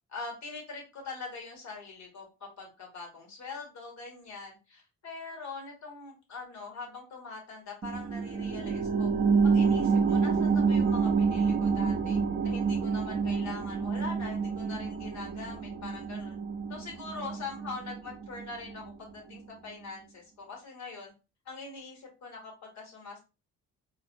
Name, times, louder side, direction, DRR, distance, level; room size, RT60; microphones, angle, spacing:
voice 1, 0.1-9.1 9.4-16.4 16.7-21.1 21.5-23.2, left 4 dB, 65° left, -1 dB, 1.8 m, -43 dB
sound 1, 7.8-18.9 19.3-19.4, right 5 dB, 30° right, 0.5 m, -28 dB
4.0 x 2.6 x 2.6 m, 0.30 s
cardioid pair, 90°, 30 cm